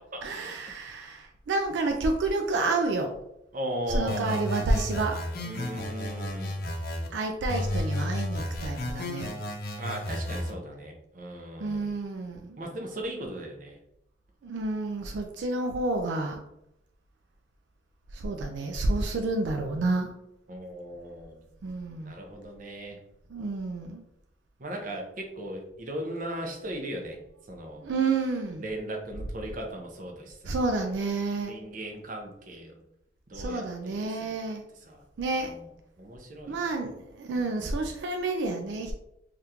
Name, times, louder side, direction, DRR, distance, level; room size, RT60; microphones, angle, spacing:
voice 1, 0.2-3.2 3.9-5.2 7.1-9.3 11.6-12.6 14.4-16.4 18.1-20.1 21.6-22.1 23.3-24.0 27.8-28.7 30.5-31.5 33.3-34.6 35.2-35.5 36.5-38.9, right 3 dB, 85° right, 4 dB, 0.4 m, -29 dB
voice 2, 3.5-4.4 5.4-6.6 9.8-11.9 12.6-13.8 20.5-21.4 22.0-23.0 24.6-27.2 27.5-27.8 28.6-30.5 31.5-32.8 33.3-34.5 34.9-35.0 35.4-35.7 36.0-36.7 37.3-37.7, right 1 dB, 50° right, 2 dB, 0.6 m, -37 dB
sound 1, 4.1-7.1 7.5-10.5, left 1 dB, 55° left, 0.6 m, -32 dB
3.5 x 2.4 x 2.8 m, 0.80 s
head